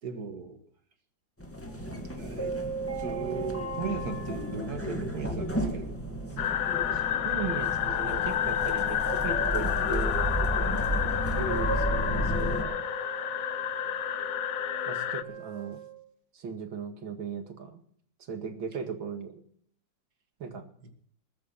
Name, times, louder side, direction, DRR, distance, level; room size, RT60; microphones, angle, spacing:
voice 1, 0.0-0.6 2.2-2.6 3.0-6.0 6.9-7.0 10.6-10.9, right 5 dB, 55° right, 2.4 m, -37 dB
sound 1, 1.4-12.6, right 1 dB, 5° left, 2.0 m, -32 dB
sound 2, 6.4-15.2, left 10 dB, 60° left, 0.9 m, -30 dB
voice 2, 7.2-10.2 11.3-12.8 14.9-15.8 16.3-17.8 18.2-19.4 20.4-20.7, right 6 dB, 90° right, 2.8 m, -37 dB
Wind instrument woodwind instrument, 11.4-16.1, right 10 dB, 35° right, 2.7 m, -43 dB
21.0 x 9.2 x 5.7 m
omnidirectional pair, 2.1 m